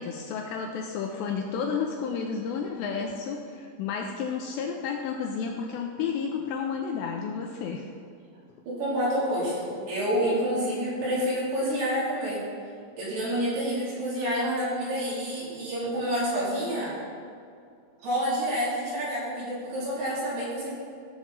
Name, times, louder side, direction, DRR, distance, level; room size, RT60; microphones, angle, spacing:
voice 1, 0.0-7.9, left 6 dB, 85° left, 2 dB, 2.6 m, -31 dB
voice 2, 8.7-12.4 13.0-16.9 18.0-20.7, equal, 60° right, -8 dB, 5.0 m, -28 dB
15.0 x 7.3 x 4.0 m, 2.4 s
omnidirectional pair, 5.6 m